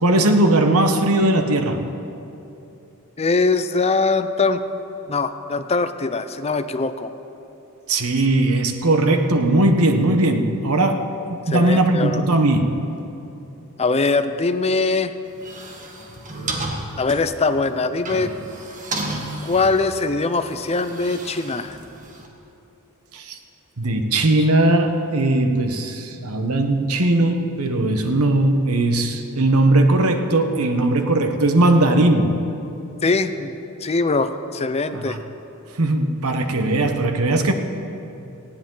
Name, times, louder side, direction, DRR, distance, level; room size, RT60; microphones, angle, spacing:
voice 1, 0.0-2.0 7.9-12.9 23.1-23.4 23.8-32.4 34.9-35.2 35.8-37.5, right 2 dB, 85° right, 6 dB, 1.2 m, -19 dB
voice 2, 3.2-4.6 5.1-7.1 11.5-12.2 13.8-15.1 17.0-18.3 19.4-21.8 24.4-24.5 33.0-33.5 33.8-35.2, left 3 dB, 30° left, 10 dB, 0.6 m, -22 dB
sound 1, 15.3-22.3, right 2 dB, 35° right, 1.7 m, -33 dB
18.5 x 16.5 x 3.9 m, 2.8 s
head